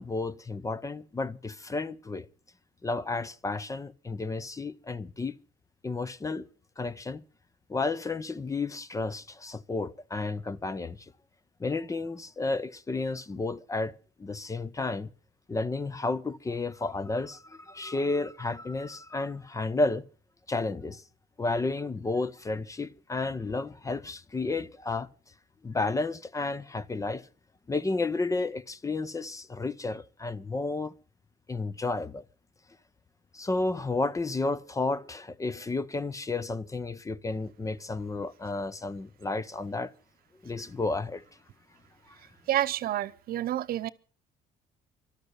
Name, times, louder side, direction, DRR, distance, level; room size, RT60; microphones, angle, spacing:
voice 1, 0.0-2.3 2.8-5.4 5.8-6.5 6.8-7.2 7.7-11.1 11.6-13.9 14.2-15.1 15.5-20.0 20.5-21.0 21.4-25.1 25.6-27.3 27.7-30.9 31.5-32.2 33.3-39.9 40.4-41.2 42.1-42.2, left 3 dB, 20° left, 0.7 m, -32 dB
voice 2, 42.5-43.9, right 12 dB, 60° right, 0.8 m, -29 dB
13.0 x 12.5 x 8.1 m
cardioid pair, 110°, 17 cm